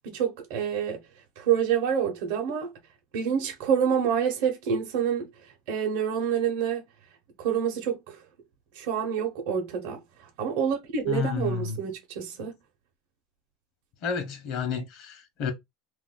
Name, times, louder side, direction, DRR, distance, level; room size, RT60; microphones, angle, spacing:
voice 1, 0.1-1.0 1.4-2.7 3.1-5.3 5.7-6.8 7.4-8.2 8.7-10.0 10.4-12.6, right 8 dB, 70° right, 0.9 m, -27 dB
voice 2, 11.1-11.8 14.0-15.5, left 6 dB, 55° left, 0.8 m, -30 dB
2.5 x 2.2 x 3.7 m
supercardioid pair, 135°, 0 cm